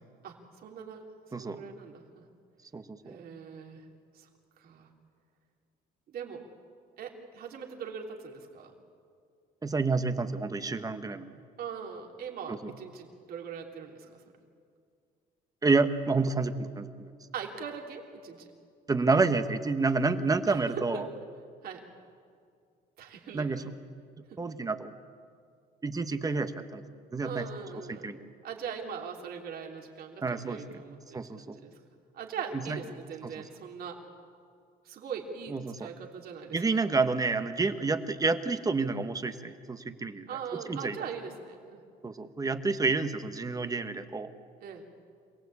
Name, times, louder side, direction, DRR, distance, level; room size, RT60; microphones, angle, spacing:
voice 1, 0.2-1.1 1.4-2.2 3.1-3.8 4.1-4.3 4.6-4.9 6.1-6.5 7.0-8.7 11.6-14.2 17.3-18.5 20.5-20.6 20.9-21.1 21.6-21.9 23.0-23.5 24.3-24.4 27.2-28.1 28.4-31.8 32.1-34.1 34.9-36.9 37.6-37.8 40.3-41.8 44.6-44.8, right 6 dB, 65° right, 1 dB, 3.4 m, -41 dB
voice 2, 1.3-1.6 2.7-3.2 9.6-11.3 12.5-12.7 15.6-17.1 18.9-21.0 23.3-23.6 24.4-24.9 25.8-26.8 27.1-27.4 27.9-28.2 30.2-30.8 31.1-31.5 32.5-32.8 33.2-33.3 35.5-35.9 36.5-40.3 40.7-41.0 42.0-44.3, right 3 dB, 20° right, 9 dB, 1.3 m, -29 dB
27.0 x 18.0 x 8.6 m, 2.2 s
cardioid pair, 110°, 17 cm